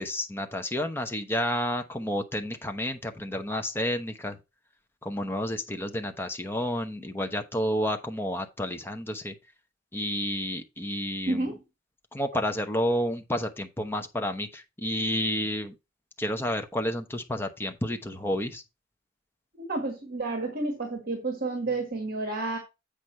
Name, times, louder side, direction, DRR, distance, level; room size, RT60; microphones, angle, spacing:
voice 1, 0.0-4.4 5.0-9.3 9.9-11.5 12.1-15.7 16.2-18.6, left 1 dB, 10° left, 0.9 m, -30 dB
voice 2, 11.2-11.6 19.6-22.6, right 2 dB, 50° right, 1.5 m, -30 dB
8.1 x 5.0 x 4.4 m
head